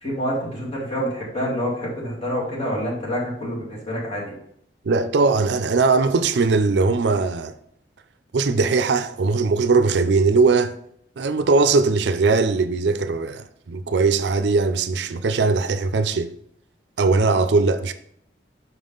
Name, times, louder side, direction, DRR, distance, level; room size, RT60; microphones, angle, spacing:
voice 1, 0.0-4.3, equal, 35° left, 2.6 m, -27 dB
voice 2, 4.8-7.5 8.3-10.7 11.2-16.3 17.0-17.9, right 4 dB, 70° right, 0.5 m, -20 dB
5.9 x 5.4 x 3.9 m
head